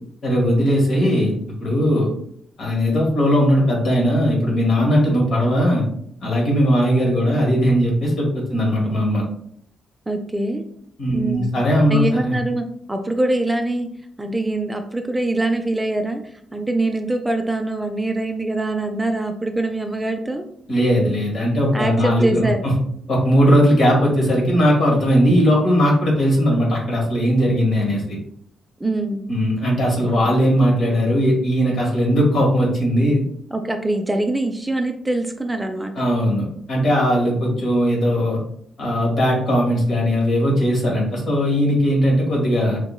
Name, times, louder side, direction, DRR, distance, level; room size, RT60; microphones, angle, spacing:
voice 1, 0.2-2.1 2.6-5.8 6.2-9.2 11.0-12.3 20.7-22.7 23.1-28.2 29.3-33.2 35.9-38.4 38.8-42.8, equal, 55° left, -2 dB, 1.5 m, -18 dB
voice 2, 10.1-10.6 11.1-11.5 11.9-13.9 14.2-20.4 21.7-22.6 28.8-29.2 30.0-30.3 33.5-36.0, right 2 dB, 15° right, 5 dB, 0.5 m, -24 dB
4.4 x 2.9 x 2.3 m, 0.68 s
hypercardioid pair, 40°, 0 cm